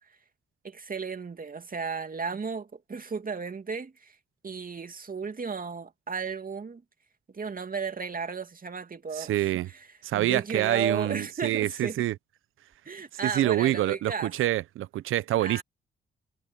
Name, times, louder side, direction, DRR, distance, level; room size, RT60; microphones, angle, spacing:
voice 1, 0.6-4.2 4.4-6.8 7.3-9.8 10.1-12.0 12.8-14.3 15.4-15.6, right 5 dB, 45° right, 2.7 m, -34 dB
voice 2, 9.1-9.7 10.0-12.1 13.2-15.6, right 14 dB, 75° right, 1.0 m, -26 dB
hypercardioid pair, 45°, 21 cm